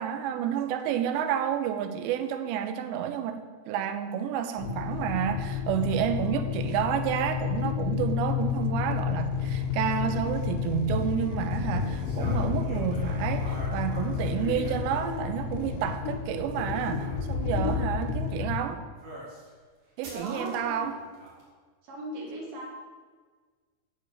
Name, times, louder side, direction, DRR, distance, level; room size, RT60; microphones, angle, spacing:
voice 1, 0.0-18.8 20.0-21.0, right 9 dB, 85° right, 7 dB, 3.0 m, -30 dB
sound 1, 4.6-18.6, left 7 dB, 90° left, 3.3 m, -30 dB
sound 2, 11.8-15.4 16.3-17.2 19.0-19.5 20.0-21.5, right 1 dB, 45° right, 3.4 m, -45 dB
voice 2, 20.0-20.9 21.9-22.7, right 1 dB, 60° right, -3 dB, 3.8 m, -38 dB
8.9 x 8.3 x 6.6 m, 1.5 s
omnidirectional pair, 5.0 m